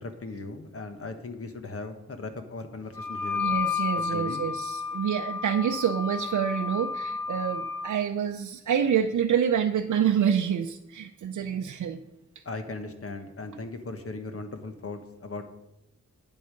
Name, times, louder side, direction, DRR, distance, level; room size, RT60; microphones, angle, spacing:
voice 1, 0.0-3.5 4.1-4.4 12.4-15.4, left 3 dB, 50° left, 7 dB, 1.3 m, -38 dB
Wind instrument woodwind instrument, 2.9-7.9, left 5 dB, 10° left, 2.7 m, -31 dB
voice 2, 3.3-12.0, right 8 dB, 80° right, 4 dB, 0.6 m, -27 dB
9.5 x 7.8 x 5.2 m, 0.85 s
wide cardioid pair, 105°, 30 cm